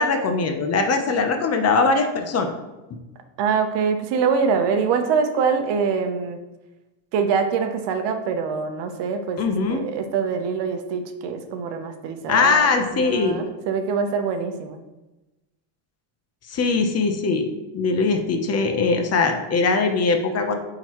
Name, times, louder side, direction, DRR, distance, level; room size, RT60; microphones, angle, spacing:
voice 1, 0.0-2.5 9.4-9.8 12.3-13.4 16.5-20.6, left 4 dB, 30° left, 5 dB, 0.8 m, -21 dB
voice 2, 3.4-6.4 7.1-9.4 9.7-12.7 12.9-14.8, right 6 dB, 60° right, 7 dB, 0.9 m, -24 dB
8.9 x 3.9 x 3.0 m, 1.0 s
supercardioid pair, 115°, 48 cm